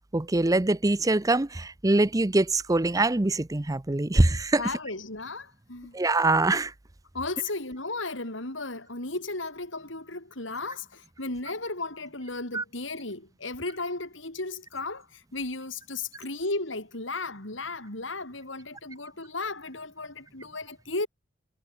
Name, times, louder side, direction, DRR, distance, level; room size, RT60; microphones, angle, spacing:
voice 1, 0.1-4.6 5.9-6.7 12.5-12.6, right 2 dB, 20° right, 0.6 m, -23 dB
voice 2, 4.6-5.9 7.1-21.1, left 3 dB, 70° left, 4.9 m, -35 dB
head